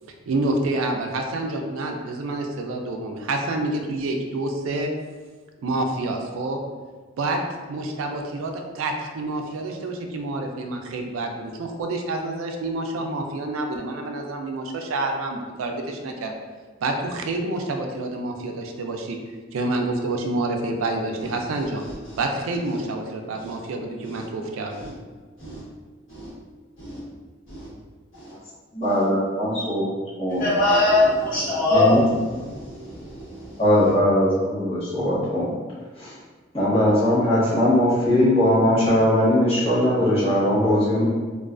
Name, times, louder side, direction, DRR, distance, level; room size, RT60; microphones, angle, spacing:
voice 1, 0.0-4.9 5.6-6.6 7.2-7.4 7.7-16.3 16.8-19.2 19.5-21.9 22.2-24.8, right 2 dB, 85° right, 3 dB, 0.3 m, -28 dB
voice 2, 28.7-29.8 30.2-30.4 31.7-32.0 33.6-35.5 36.0-36.1 36.5-41.0, left 1 dB, 30° left, -10 dB, 0.9 m, -20 dB
voice 3, 30.4-32.0 32.5-33.3, left 2 dB, 75° left, -9 dB, 1.1 m, -21 dB
2.3 x 2.3 x 2.4 m, 1.4 s
head